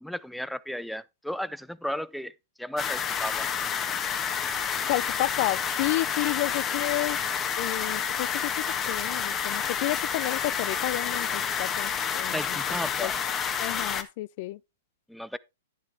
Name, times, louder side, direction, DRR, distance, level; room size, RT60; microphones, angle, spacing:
voice 1, 0.0-2.3 2.6-3.5 12.3-13.1 15.1-15.4, equal, ahead, 0.5 m, -34 dB
sound 1, 2.8-14.0, left 7 dB, 25° left, 1.3 m, -29 dB
voice 2, 4.9-7.2 7.6-13.1 13.6-14.6, left 19 dB, 50° left, 0.4 m, -31 dB
10.5 x 7.4 x 3.4 m
hypercardioid pair, 115°, 0 cm